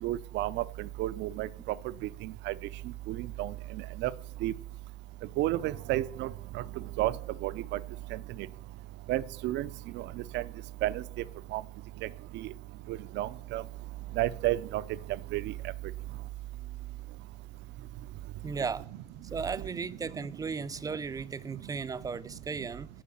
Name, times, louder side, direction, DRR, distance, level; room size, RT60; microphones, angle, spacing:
voice 1, 0.0-1.5 2.2-2.5 3.1-3.5 4.0-4.1 4.4-4.5 5.4-6.3 6.5-6.6 7.0-7.1 7.4-7.8 8.1-8.2 9.1-9.7 10.0-10.1 10.3-10.4 10.8-11.0 11.5-11.6 12.3-12.5 12.9-13.6 14.2-14.8 15.3-15.5, right 15 dB, 70° right, 0.5 m, -31 dB
voice 2, 18.4-18.9 19.1-22.9, right 5 dB, 20° right, 0.5 m, -36 dB
8.7 x 5.0 x 7.6 m
supercardioid pair, 100°, 19 cm